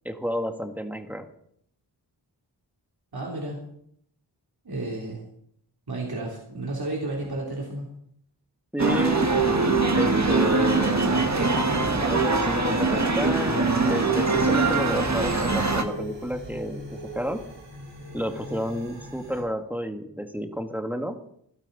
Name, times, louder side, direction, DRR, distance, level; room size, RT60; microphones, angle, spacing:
voice 1, 0.1-1.3 8.7-9.3 9.9-11.2 11.9-17.4 18.1-21.2, equal, 5° right, 5 dB, 2.0 m, -31 dB
voice 2, 3.1-3.6 4.6-5.2 5.9-7.9, right 2 dB, 60° right, -3 dB, 3.6 m, -32 dB
sound 1, 8.8-15.8, right 3 dB, 40° right, 1.8 m, -22 dB
sound 2, 9.1-19.4, right 1 dB, 85° right, 4.6 m, -41 dB
17.5 x 12.0 x 4.2 m, 0.69 s
cardioid pair, 40°, 42 cm